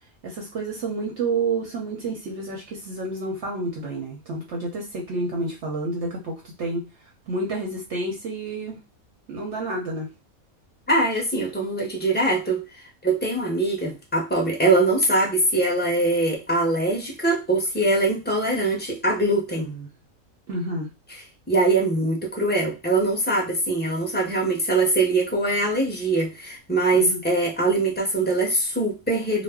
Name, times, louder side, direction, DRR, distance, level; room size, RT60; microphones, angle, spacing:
voice 1, 0.2-6.9 7.3-8.8 9.3-10.1 19.6-19.9 20.5-20.9 26.9-27.2, right 2 dB, 60° right, 0 dB, 0.9 m, -29 dB
voice 2, 10.9-12.6 13.0-19.7 21.5-29.4, right 2 dB, 10° left, -1 dB, 0.5 m, -22 dB
2.4 x 2.0 x 3.4 m, 0.26 s
omnidirectional pair, 1.5 m